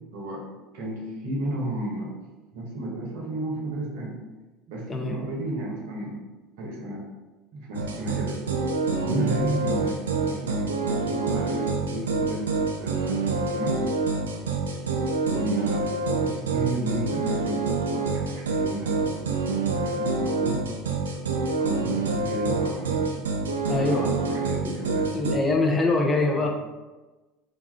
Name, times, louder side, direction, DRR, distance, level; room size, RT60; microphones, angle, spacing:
voice 1, 0.1-0.4 0.7-2.2 2.5-4.2 4.7-6.2 6.6-7.0 7.5-8.4 8.9-12.5 12.8-13.8 15.3-15.8 16.2-17.6 17.9-19.2 19.5-20.6 21.6-23.1 23.6-25.1 26.3-26.5, right 1 dB, 70° right, -2 dB, 0.8 m, -33 dB
sound 1, 7.7-25.4, right 3 dB, 85° right, 0.3 m, -26 dB
voice 2, 23.7-24.1 25.1-26.5, left 2 dB, 20° left, 0 dB, 0.6 m, -24 dB
2.5 x 2.3 x 3.4 m, 1.2 s
hypercardioid pair, 75°, 0 cm